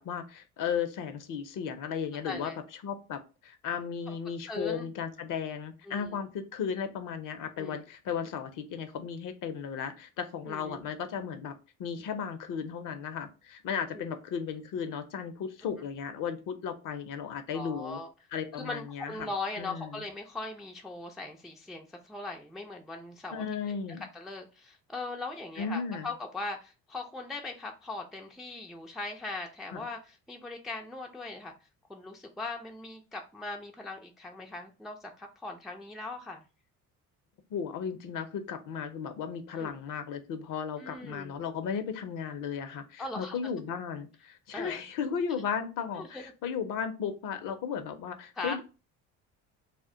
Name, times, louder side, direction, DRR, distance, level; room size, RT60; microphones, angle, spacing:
voice 1, 0.0-2.5 2.8-18.0 18.3-19.3 19.6-20.0 23.3-24.1 25.6-26.1 29.7-29.9 37.5-48.6, left 7 dB, 45° left, 9 dB, 0.6 m, -35 dB
voice 2, 2.2-2.6 4.1-4.2 4.4-4.9 5.9-6.2 7.6-7.8 10.5-10.8 13.9-14.1 15.6-15.7 17.5-18.1 18.6-23.8 24.1-31.5 31.9-36.4 39.6-39.7 40.8-41.4 43.0-43.4 44.5-44.8 46.0-46.3 48.4-48.6, left 2 dB, ahead, 2 dB, 0.4 m, -40 dB
2.3 x 2.2 x 3.6 m, 0.32 s
hypercardioid pair, 55°, 43 cm